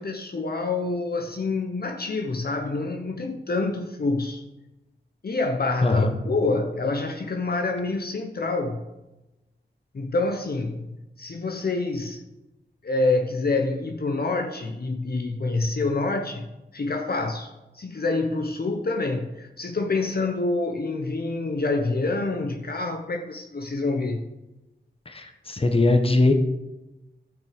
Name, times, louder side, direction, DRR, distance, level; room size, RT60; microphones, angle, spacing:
voice 1, 0.0-4.4 5.2-8.9 9.9-12.2 12.8-24.3, left 3 dB, 55° left, 4 dB, 0.9 m, -27 dB
voice 2, 5.8-6.1 25.1-26.3, left 2 dB, 30° left, 6 dB, 1.1 m, -20 dB
12.5 x 6.1 x 5.1 m, 1.0 s
wide cardioid pair, 90°, 19 cm